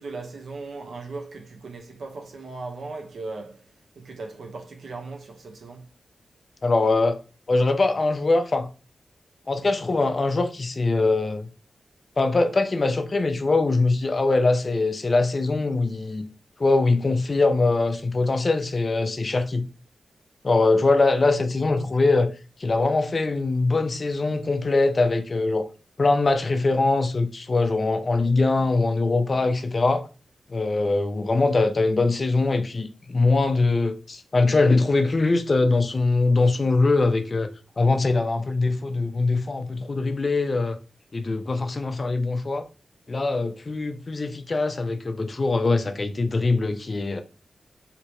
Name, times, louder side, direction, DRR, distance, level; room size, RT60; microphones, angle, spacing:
voice 1, 0.0-3.6 4.0-5.9, right 3 dB, 80° right, 0.8 m, -37 dB
voice 2, 6.6-7.2 7.5-8.7 9.5-11.5 12.2-16.3 16.6-19.6 20.4-22.3 22.6-25.7 26.0-30.1 30.5-37.5 37.8-40.8 41.1-42.7 43.1-47.2, left 3 dB, 40° left, 0.5 m, -22 dB
3.4 x 2.8 x 3.0 m
wide cardioid pair, 85°, 0 cm